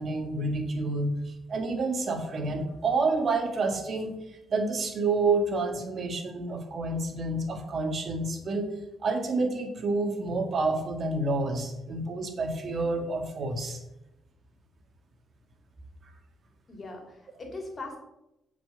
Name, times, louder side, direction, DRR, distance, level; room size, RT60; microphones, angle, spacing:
voice 1, 0.0-4.2 4.5-8.7 9.0-13.8, right 3 dB, 50° right, 5 dB, 1.9 m, -29 dB
voice 2, 16.7-18.0, left 2 dB, 35° left, 2 dB, 3.1 m, -40 dB
7.8 x 5.5 x 6.8 m, 0.88 s
cardioid pair, 90°, 0 cm